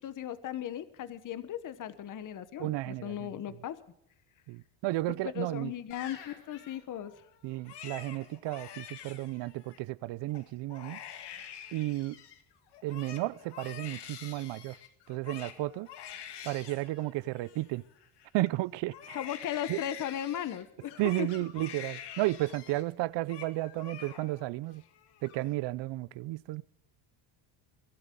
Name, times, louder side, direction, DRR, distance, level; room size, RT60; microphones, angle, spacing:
voice 1, 0.0-3.8 5.1-7.1 19.1-21.3, left 10 dB, 40° left, 1.0 m, -37 dB
voice 2, 2.6-3.3 4.5-5.7 7.4-11.0 11.7-12.2 12.8-14.8 15.1-15.9 16.4-17.8 18.3-19.2 19.7-19.8 21.0-24.8 25.2-26.6, right 18 dB, 60° right, 0.6 m, -33 dB
sound 1, 5.9-7.7 10.8-11.2 11.9-12.8 13.4-14.3 15.0-15.1 15.4-15.9 16.1-16.8 20.4-23.0 23.5-24.4 25.2-25.4, left 9 dB, 85° left, 3.2 m, -54 dB
Crying sobbing, 7.5-9.8 10.3-10.4 10.7-12.4 12.7-18.5 18.9-22.9 23.1-23.5 23.8-24.5 24.8-25.5, left 9 dB, 55° left, 2.1 m, -47 dB
22.5 x 12.0 x 3.7 m
cardioid pair, 120°, 49 cm